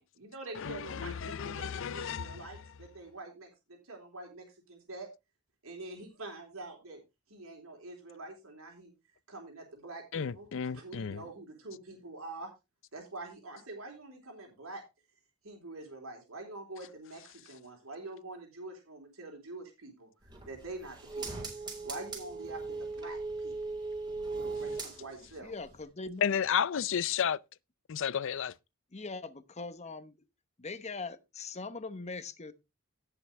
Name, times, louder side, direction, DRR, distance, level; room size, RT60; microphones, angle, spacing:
voice 1, 0.0-5.1 5.6-7.0 7.3-8.9 9.3-12.5 12.9-14.8 15.4-20.1 20.5-21.5 21.8-23.7 24.3-25.5, right 2 dB, 90° right, 3.8 m, -46 dB
voice 2, 0.6-2.4 10.1-11.2 26.2-27.4 27.9-28.5, left 7 dB, 65° left, 0.5 m, -32 dB
sound 1, 20.2-25.4 25.7-25.8, right 3 dB, 20° right, 3.8 m, -39 dB
voice 3, 25.4-26.2 28.9-30.1 30.6-32.5, left 3 dB, 30° left, 1.0 m, -41 dB
17.0 x 6.1 x 3.3 m
head